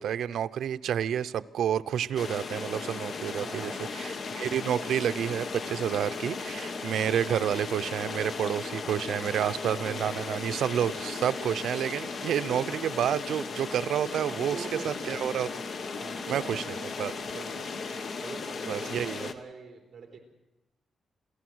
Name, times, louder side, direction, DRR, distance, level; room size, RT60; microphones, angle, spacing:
voice 1, 0.0-14.6 14.8-15.5 16.3-16.6 17.0-17.2 18.7-19.3, right 9 dB, 90° right, 0.6 m, -29 dB
sound 1, 2.2-19.3, left 4 dB, 45° left, 1.2 m, -36 dB
voice 2, 3.3-3.9 9.6-10.2 12.5-12.7 14.2-15.3 15.9-16.9 17.2-17.7 18.2-20.2, right 5 dB, 40° right, 3.9 m, -44 dB
28.0 x 15.5 x 6.3 m
wide cardioid pair, 165°, 0 cm